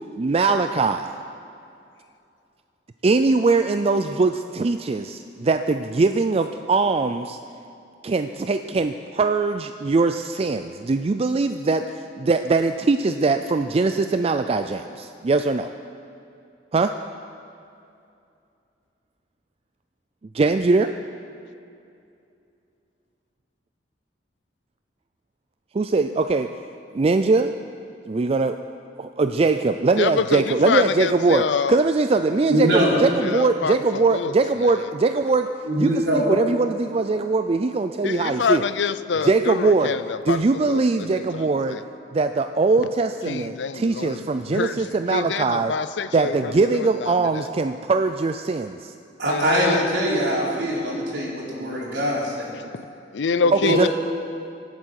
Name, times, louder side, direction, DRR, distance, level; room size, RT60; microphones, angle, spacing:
voice 1, 0.2-1.1 3.0-7.4 8.0-15.7 16.7-16.9 20.3-20.9 25.7-26.5 26.9-27.5 28.1-28.6 29.0-35.5 35.8-38.6 39.2-40.0 40.3-41.8 42.1-45.7 46.1-48.9 53.5-53.9, right 3 dB, 35° right, 8 dB, 0.4 m, -21 dB
voice 2, 30.0-31.8 33.2-33.7 34.1-34.3 38.0-40.4 40.7-41.4 41.7-41.8 43.3-44.2 44.5-44.7 45.1-47.2 49.3-49.8 53.1-53.9, left 5 dB, 80° left, 14 dB, 0.5 m, -26 dB
voice 3, 32.5-33.0 35.6-36.2 49.2-52.5 53.6-53.8, equal, 70° right, -4 dB, 4.0 m, -22 dB
24.5 x 8.3 x 6.4 m, 2.6 s
head